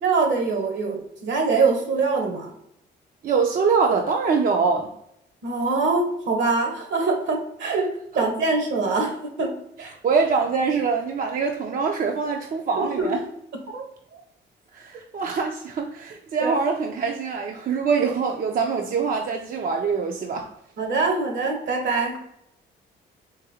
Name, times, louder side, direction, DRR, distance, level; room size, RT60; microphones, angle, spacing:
voice 1, 0.0-2.5 5.4-7.9 8.1-9.5 9.8-9.9 12.8-13.1 13.7-13.8 16.4-16.5 20.8-22.2, right 4 dB, 70° right, 2 dB, 1.1 m, -23 dB
voice 2, 3.2-4.9 9.8-13.2 13.7-13.8 14.7-20.5, right 5 dB, 45° right, 2 dB, 0.5 m, -24 dB
3.9 x 3.1 x 2.7 m, 0.75 s
cardioid pair, 90°, 20 cm